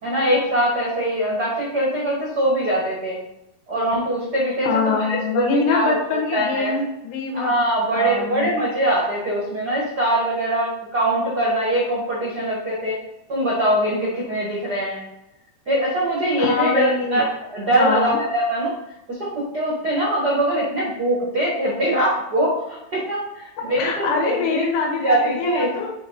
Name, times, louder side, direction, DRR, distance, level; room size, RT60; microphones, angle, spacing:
voice 1, 0.0-3.2 3.7-6.0 6.3-6.8 7.3-13.0 13.3-15.1 15.6-17.3 17.5-18.7 19.1-24.7 24.9-25.8, right 1 dB, 80° right, -4 dB, 0.9 m, -22 dB
voice 2, 4.6-7.6 7.9-8.5 16.4-17.3 17.8-18.2 23.7-25.9, left 4 dB, 85° left, 0 dB, 3.4 m, -23 dB
7.7 x 5.3 x 4.0 m, 0.89 s
omnidirectional pair, 4.7 m